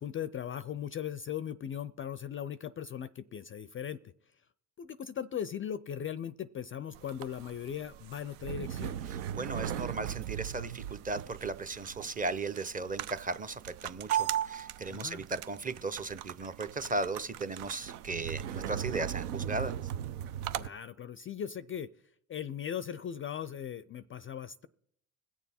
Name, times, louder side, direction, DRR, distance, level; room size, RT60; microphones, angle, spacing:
voice 1, 0.0-4.1 4.8-9.0 14.9-15.2 20.6-21.9 22.3-24.7, left 9 dB, 30° left, 16 dB, 0.4 m, -38 dB
sound 1, 6.9-20.7, right 10 dB, 85° right, 0.6 m, -38 dB
voice 2, 9.3-19.7, right 3 dB, 20° right, 13 dB, 0.7 m, -36 dB
21.0 x 7.1 x 4.2 m, 0.68 s
hypercardioid pair, 70°, 43 cm